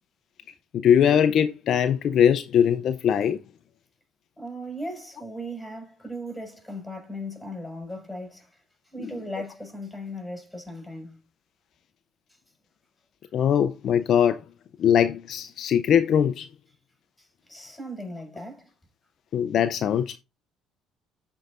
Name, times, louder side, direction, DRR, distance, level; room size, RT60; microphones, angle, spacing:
voice 1, 0.7-3.4 9.0-9.1 13.3-14.4 14.8-16.5 19.3-20.2, left 8 dB, 55° left, 0.5 m, -21 dB
voice 2, 4.4-8.6 8.9-11.2 17.2-18.7, equal, 5° left, 5.2 m, -37 dB
14.0 x 4.7 x 2.5 m
hypercardioid pair, 65°, 0 cm